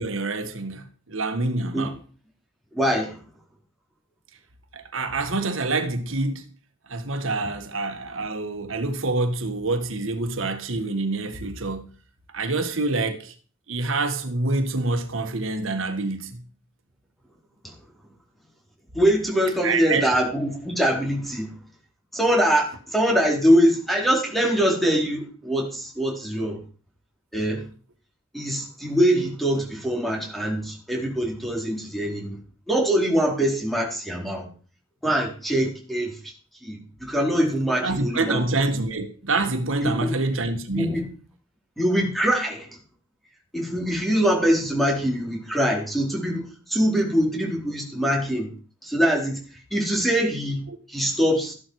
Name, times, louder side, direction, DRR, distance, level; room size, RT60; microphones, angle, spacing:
voice 1, 0.0-1.9 4.7-6.5 6.9-11.9 12.3-13.3 13.7-16.4 19.6-20.1 37.8-41.1 50.7-50.8, right 3 dB, 80° right, 1.6 m, -26 dB
voice 2, 2.7-3.1 17.6-17.7 18.9-21.5 22.1-26.6 27.3-27.6 28.3-32.4 32.7-34.5 35.0-36.3 36.6-38.4 39.8-40.1 40.7-41.0 41.8-42.7 43.5-46.4 46.7-48.5 48.8-49.4 49.7-50.6 50.9-51.5, equal, ahead, 4.1 m, -23 dB
14.0 x 11.5 x 4.8 m
head